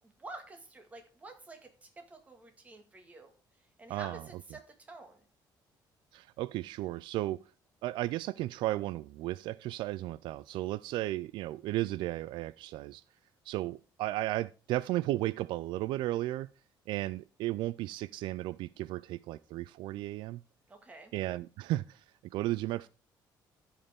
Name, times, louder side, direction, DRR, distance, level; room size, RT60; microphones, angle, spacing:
voice 1, 0.0-3.3 3.8-5.2 20.7-21.1, right 2 dB, 20° right, 1.9 m, -49 dB
voice 2, 3.9-4.2 6.1-7.4 7.8-13.0 13.5-16.5 16.9-20.4 21.1-22.0 22.3-22.9, right 16 dB, 85° right, 0.4 m, -34 dB
14.0 x 5.6 x 3.6 m
cardioid pair, 175°, 8 cm